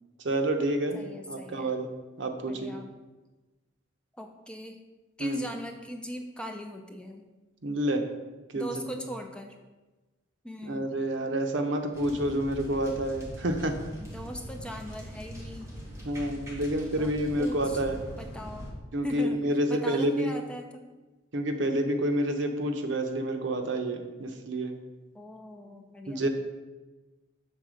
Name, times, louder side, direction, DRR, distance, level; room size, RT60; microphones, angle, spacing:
voice 1, 0.2-1.0 1.3-1.9 2.2-2.7 5.2-5.4 7.6-8.0 8.5-8.9 10.7-13.7 16.0-18.0 18.9-20.3 21.3-24.8 26.1-26.3, right 1 dB, 70° right, 5 dB, 0.8 m, -28 dB
voice 2, 0.9-1.7 2.4-2.9 4.1-4.8 5.2-7.3 8.5-9.6 10.4-10.9 14.0-15.8 17.0-17.1 17.4-17.8 18.2-18.7 19.0-19.4 19.7-20.8 25.1-26.3, equal, 5° left, 3 dB, 0.5 m, -40 dB
sound 1, 11.9-18.7, equal, 15° right, 1.5 m, -42 dB
6.6 x 3.7 x 6.3 m, 1.2 s
head